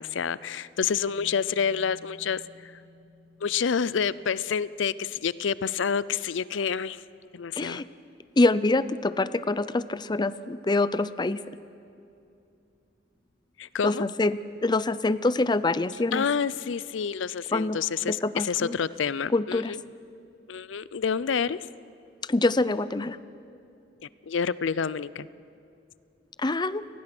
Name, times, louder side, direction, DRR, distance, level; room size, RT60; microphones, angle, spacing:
voice 1, 0.0-2.7 3.4-7.0 7.3-7.8 13.6-14.0 16.1-19.8 20.5-21.6 24.3-25.3, left 6 dB, 80° left, 18 dB, 0.5 m, -28 dB
Bass guitar, 0.9-6.9, left 3 dB, 5° right, 4.8 m, -57 dB
voice 2, 7.6-7.9 8.4-11.4 13.8-16.3 17.5-17.8 18.1-18.8 19.3-19.7 22.2-23.2 26.4-26.8, left 2 dB, 25° left, 15 dB, 0.5 m, -25 dB
29.5 x 19.5 x 6.1 m, 2.7 s
head